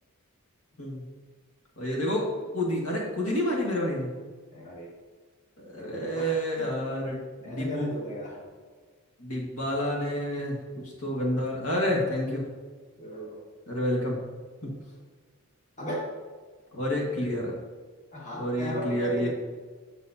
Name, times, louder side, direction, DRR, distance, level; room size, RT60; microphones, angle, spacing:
voice 1, 1.8-2.3 2.5-4.1 5.6-7.2 7.4-7.9 9.2-10.6 11.0-12.4 13.7-14.2 14.6-14.7 16.7-17.5 18.3-19.3, equal, 75° left, -3 dB, 1.5 m, -29 dB
voice 2, 4.5-4.9 5.7-6.7 7.4-8.4 13.0-13.4 15.8-16.1 18.1-19.3, left 1 dB, 35° left, -4 dB, 1.7 m, -36 dB
7.7 x 6.4 x 2.7 m, 1.5 s
head